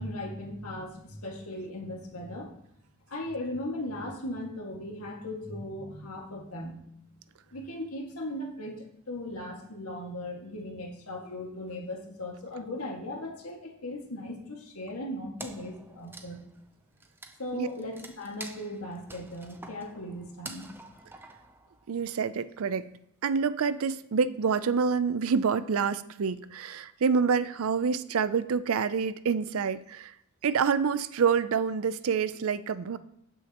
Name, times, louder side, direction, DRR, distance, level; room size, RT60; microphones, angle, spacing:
voice 1, 0.0-2.5 3.1-7.2 7.5-16.4 17.4-20.7, left 1 dB, 75° left, 0 dB, 1.9 m, -38 dB
Wood, 15.4-22.1, right 2 dB, 10° right, 0.6 m, -47 dB
voice 2, 21.9-22.9 23.2-30.1 30.4-33.0, right 6 dB, 65° right, 15 dB, 0.4 m, -27 dB
15.0 x 6.3 x 3.0 m, 0.74 s
head